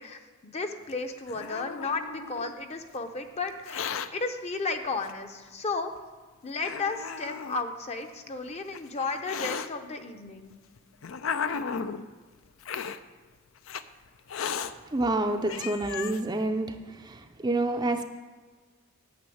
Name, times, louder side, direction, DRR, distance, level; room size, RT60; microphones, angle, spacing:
voice 1, 0.0-5.9 6.4-10.5, left 3 dB, 30° left, 6 dB, 0.7 m, -34 dB
Hiss, 0.9-2.5 3.5-4.1 5.0-5.1 6.0-6.1 6.6-7.6 8.5-9.7 10.5-12.0 12.6-13.0 13.7-13.8 14.3-14.7 15.2-15.3 15.5-16.2, left 6 dB, 65° left, 0.5 m, -35 dB
voice 2, 14.9-16.7 17.0-18.0, right 2 dB, 20° right, 5 dB, 0.5 m, -28 dB
9.5 x 6.1 x 8.5 m, 1.4 s
head